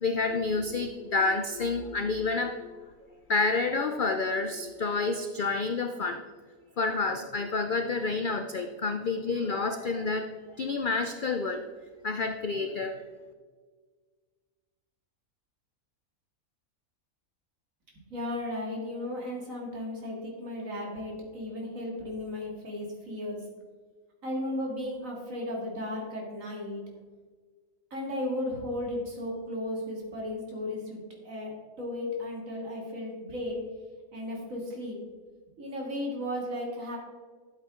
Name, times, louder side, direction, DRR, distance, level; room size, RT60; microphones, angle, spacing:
voice 1, 0.0-2.7 3.3-6.2 6.8-10.3 10.6-11.6 12.0-13.0, left 3 dB, 70° left, 7 dB, 0.4 m, -29 dB
voice 2, 18.0-23.4 24.2-26.8 27.9-33.6 34.1-35.0 35.6-37.0, left 1 dB, 60° right, -1 dB, 2.6 m, -35 dB
12.0 x 8.1 x 3.7 m, 1.5 s
omnidirectional pair, 1.6 m